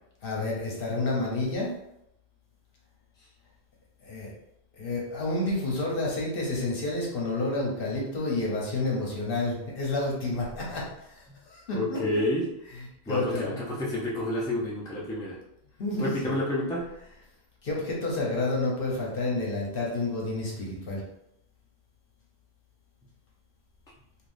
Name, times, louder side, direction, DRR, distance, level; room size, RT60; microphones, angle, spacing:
voice 1, 0.2-1.7 4.0-4.3 4.8-12.3 12.7-13.7 15.8-16.4 17.6-21.0, left 2 dB, 60° left, -3 dB, 0.9 m, -30 dB
voice 2, 11.7-12.4 13.1-15.4 16.0-16.8, left 1 dB, 5° left, -5 dB, 0.5 m, -29 dB
3.5 x 2.5 x 2.5 m, 0.81 s
omnidirectional pair, 1.1 m